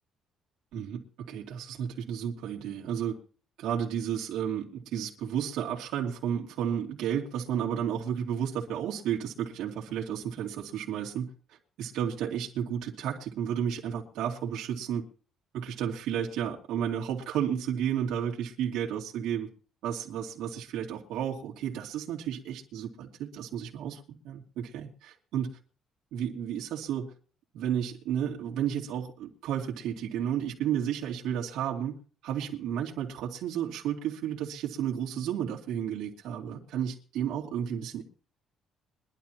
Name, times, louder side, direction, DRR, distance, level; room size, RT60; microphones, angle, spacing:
voice 1, 0.7-3.2 3.6-15.0 15.5-19.5 19.8-25.5 26.1-27.1 27.5-31.9 32.2-38.0, right 9 dB, 80° right, -2 dB, 2.5 m, -32 dB
23.0 x 12.0 x 3.0 m, 0.40 s
cardioid pair, 165°, 0 cm